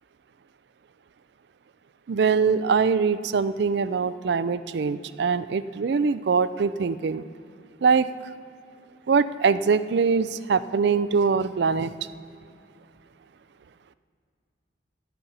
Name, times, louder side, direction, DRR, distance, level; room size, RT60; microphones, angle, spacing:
voice 1, 2.1-7.2 7.8-8.1 9.1-11.9, right 5 dB, 65° right, 0.4 m, -23 dB
13.0 x 5.7 x 9.2 m
head